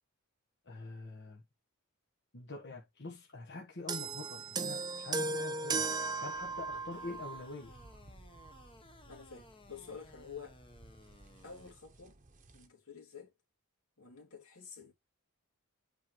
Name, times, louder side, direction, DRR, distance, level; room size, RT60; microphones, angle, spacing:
voice 1, 0.7-1.4 2.3-5.9 6.2-7.8, left 3 dB, 50° left, 1.3 m, -45 dB
sound 1, 3.9-7.5 8.4-8.5, right 3 dB, 20° right, 0.4 m, -36 dB
sound 2, 6.3-12.7, right 1 dB, 35° right, 1.0 m, -59 dB
sound 3, 6.9-11.7, left 2 dB, 25° left, 1.0 m, -59 dB
voice 2, 9.1-10.6 11.4-12.2 12.5-13.3 14.0-14.9, left 6 dB, 75° left, 2.5 m, -50 dB
8.5 x 4.6 x 3.1 m
head